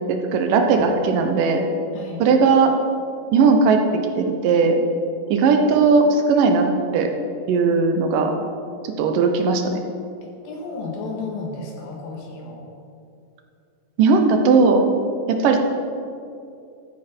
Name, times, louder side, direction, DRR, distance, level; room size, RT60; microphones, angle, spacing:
voice 1, 0.1-1.6 2.2-2.7 3.3-3.8 4.2-4.8 5.3-6.7 6.9-7.1 7.5-8.3 9.0-9.8 14.0-14.8 15.3-15.6, right 4 dB, 75° right, 5 dB, 2.5 m, -17 dB
voice 2, 1.9-2.2 10.2-12.6, left 3 dB, 85° left, 0 dB, 3.6 m, -33 dB
14.0 x 9.2 x 4.4 m, 2.5 s
omnidirectional pair, 4.0 m